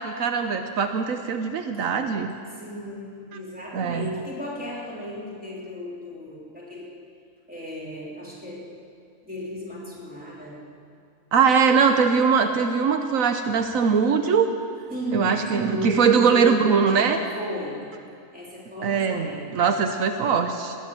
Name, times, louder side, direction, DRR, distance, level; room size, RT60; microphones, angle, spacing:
voice 1, 0.0-2.3 3.3-3.4 3.7-4.1 11.3-14.5 15.1-17.2 18.8-20.8, right 6 dB, 80° right, 7 dB, 1.2 m, -21 dB
voice 2, 2.5-7.0 7.5-8.8 9.2-10.7 14.9-17.9 18.3-19.6, left 1 dB, 5° right, -6 dB, 3.4 m, -34 dB
19.5 x 9.8 x 7.4 m, 2.5 s
omnidirectional pair, 1.4 m